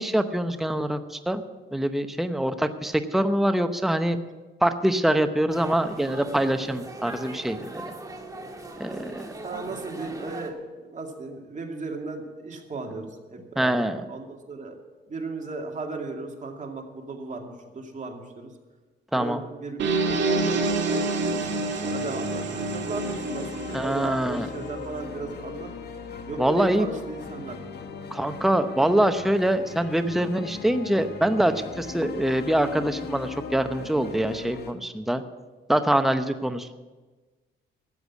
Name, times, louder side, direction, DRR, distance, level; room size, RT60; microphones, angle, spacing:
voice 1, 0.0-1.4 1.7-4.2 4.6-7.8 8.8-9.3 13.6-14.0 19.1-19.4 23.7-24.5 26.4-26.9 28.1-35.2 35.7-36.7, right 1 dB, ahead, 9 dB, 0.8 m, -24 dB
sound 1, 5.5-10.5, right 2 dB, 15° right, 1.8 m, -39 dB
voice 2, 8.6-14.8 15.1-18.5 19.1-20.6 20.9-21.5 21.8-25.7 26.3-27.6, right 3 dB, 40° right, 2 dB, 2.4 m, -36 dB
sound 2, 19.8-24.7, right 3 dB, 65° right, 2.1 m, -27 dB
sound 3, 21.4-34.7, left 6 dB, 55° left, 1.4 m, -39 dB
13.5 x 8.1 x 8.4 m, 1.3 s
cardioid pair, 90°, 20 cm